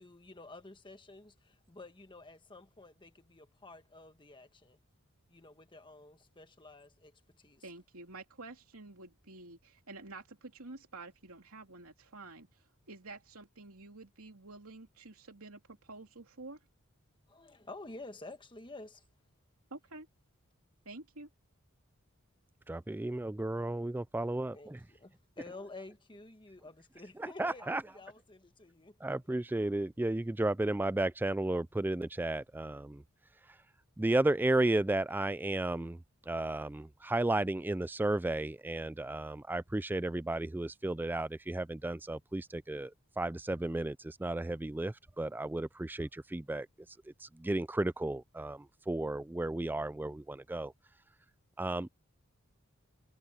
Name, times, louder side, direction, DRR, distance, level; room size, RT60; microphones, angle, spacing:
voice 1, 0.0-4.8 5.3-7.6 17.3-19.0 24.5-29.4, left 2 dB, 20° left, 1.5 m, -51 dB
voice 2, 7.6-16.6 19.7-20.1 20.8-21.3, right 3 dB, 75° right, 3.0 m, -49 dB
voice 3, 22.7-24.8 27.2-27.8 29.0-33.0 34.0-36.0 36.3-46.7 47.2-50.7 51.6-51.9, right 2 dB, 10° right, 0.3 m, -33 dB
head